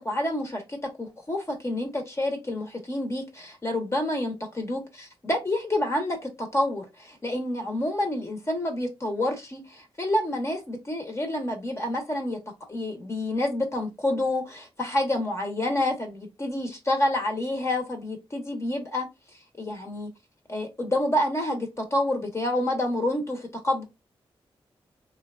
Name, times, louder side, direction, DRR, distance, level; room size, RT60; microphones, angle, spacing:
voice 1, 0.0-12.4 12.7-19.1 19.6-20.1 20.5-23.8, left 1 dB, 30° left, 0.9 m, -28 dB
3.1 x 2.3 x 2.3 m
cardioid pair, 75°, 10 cm